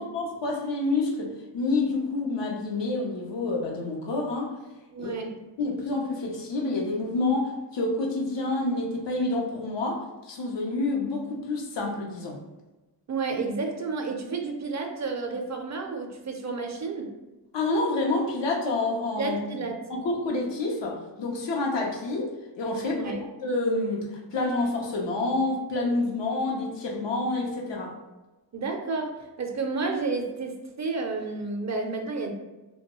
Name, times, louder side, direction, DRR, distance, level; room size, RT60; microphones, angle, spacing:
voice 1, 0.0-4.5 5.0-5.1 5.6-12.4 17.5-19.4 19.9-23.1 23.4-27.9, left 2 dB, 85° left, -1 dB, 0.7 m, -28 dB
voice 2, 4.9-5.3 13.1-17.1 19.2-19.8 22.9-23.2 28.5-32.3, right 4 dB, 45° right, 3 dB, 0.4 m, -31 dB
2.2 x 2.2 x 2.9 m, 1.1 s
wide cardioid pair, 80°, 42 cm